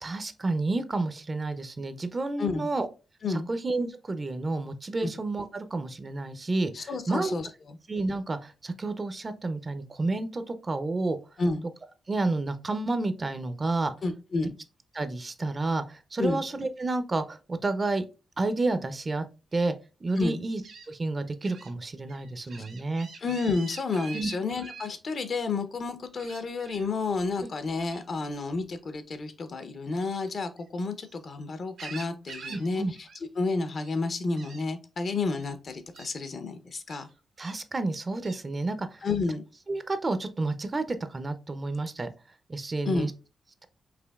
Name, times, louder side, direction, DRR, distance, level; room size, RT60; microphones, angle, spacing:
voice 1, 0.0-2.9 3.3-7.4 7.9-11.2 12.1-13.9 14.9-18.0 18.4-19.2 19.5-19.7 20.0-20.6 20.9-23.1 24.1-24.3 32.5-32.9 37.4-39.1 39.7-42.1 42.5-43.1, right 2 dB, 30° right, 10 dB, 0.4 m, -30 dB
voice 2, 6.7-7.5 11.4-11.7 14.0-14.5 16.2-16.4 20.2-20.4 23.2-32.8 33.4-37.1 39.0-39.4 42.9-43.1, left 3 dB, 50° left, 10 dB, 0.5 m, -30 dB
Gull seagull, 19.5-19.7 20.6-20.9 21.4-21.7 22.1-24.9 26.2-26.9 27.8-28.1 29.9-31.2 31.5-32.7 32.9-33.2 33.5-34.0 34.4-34.6 35.4-35.5 35.9-36.1 36.9-37.6 38.2-38.4, right 5 dB, 85° right, 1.6 m, -45 dB
4.9 x 2.7 x 2.3 m, 0.31 s
cardioid pair, 105°, 0 cm